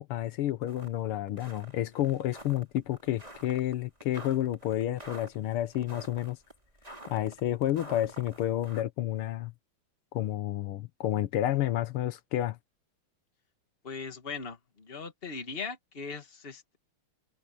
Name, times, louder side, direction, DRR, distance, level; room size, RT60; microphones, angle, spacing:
voice 1, 0.0-6.4 7.1-9.5 10.1-12.6, left 13 dB, 85° left, 1.8 m, -30 dB
sound 1, 0.7-0.9 1.3-8.8, right 1 dB, 15° right, 4.9 m, -48 dB
voice 2, 13.8-16.8, left 5 dB, 25° left, 1.9 m, -39 dB
open air
omnidirectional pair, 2.4 m